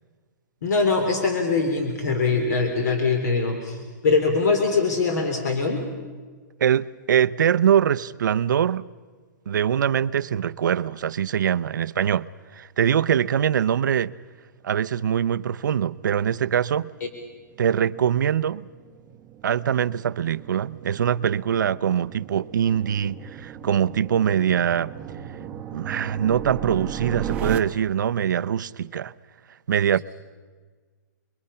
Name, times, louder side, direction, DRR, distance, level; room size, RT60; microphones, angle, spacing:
voice 1, 0.6-3.8 4.0-5.8, left 4 dB, 60° left, 3.5 m, -22 dB
voice 2, 6.6-8.8 9.5-14.1 14.6-16.9 17.6-18.7 19.4-24.9 25.7-29.1 29.7-30.0, right 9 dB, 75° right, 0.7 m, -23 dB
sound 1, 16.9-27.6, right 10 dB, 10° right, 1.0 m, -37 dB
29.5 x 22.5 x 5.7 m
hypercardioid pair, 170°, 10 cm